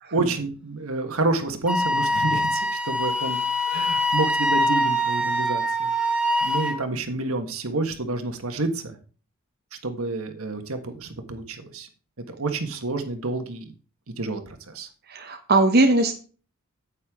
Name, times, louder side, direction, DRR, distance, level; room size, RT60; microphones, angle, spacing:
voice 1, 0.1-3.4 3.7-5.9 6.4-8.9 9.8-11.9 12.3-13.7 14.2-14.9, right 2 dB, 70° right, 7 dB, 1.5 m, -29 dB
Wind instrument woodwind instrument, 1.7-6.8, equal, 5° right, 1.0 m, -24 dB
voice 2, 15.1-16.1, right 2 dB, 45° right, 4 dB, 1.0 m, -20 dB
9.5 x 8.7 x 3.7 m, 0.38 s
head